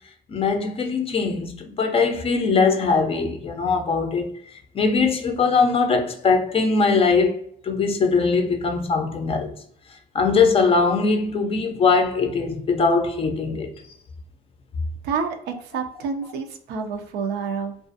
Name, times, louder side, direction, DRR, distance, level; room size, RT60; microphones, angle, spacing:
voice 1, 0.3-4.3 4.7-7.4 7.6-9.5 10.1-13.7, left 4 dB, 35° left, 0.4 m, -21 dB
voice 2, 15.0-17.8, right 5 dB, 75° right, 0.4 m, -28 dB
2.4 x 2.3 x 2.5 m
cardioid pair, 110°, 17 cm